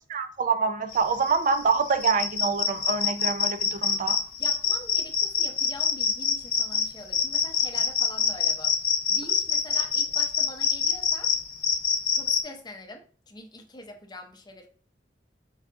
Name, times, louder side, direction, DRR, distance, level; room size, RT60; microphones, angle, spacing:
voice 1, 0.1-4.2, right 5 dB, 45° right, 8 dB, 0.4 m, -26 dB
sound 1, 0.9-12.4, left 6 dB, 55° left, 0.8 m, -26 dB
voice 2, 4.4-8.7 9.1-11.3 12.1-14.7, left 1 dB, 25° left, 4 dB, 0.6 m, -44 dB
4.7 x 2.4 x 3.6 m, 0.39 s
head